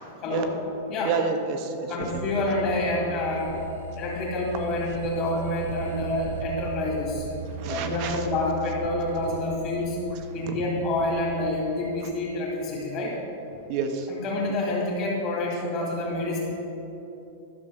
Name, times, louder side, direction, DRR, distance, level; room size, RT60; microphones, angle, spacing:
voice 1, 1.0-2.5 7.5-8.3 10.1-10.6 12.0-12.1 13.7-14.1 15.5-15.6, right 5 dB, 35° right, 6 dB, 0.8 m, -31 dB
voice 2, 1.9-3.5 4.0-7.3 7.7-10.0 10.3-13.1 14.1-16.4, left 2 dB, 30° left, -4 dB, 2.1 m, -28 dB
sound 1, 2.1-11.5, right 5 dB, 75° right, 0.6 m, -38 dB
12.0 x 6.7 x 5.4 m, 2.9 s
supercardioid pair, 175°, 0 cm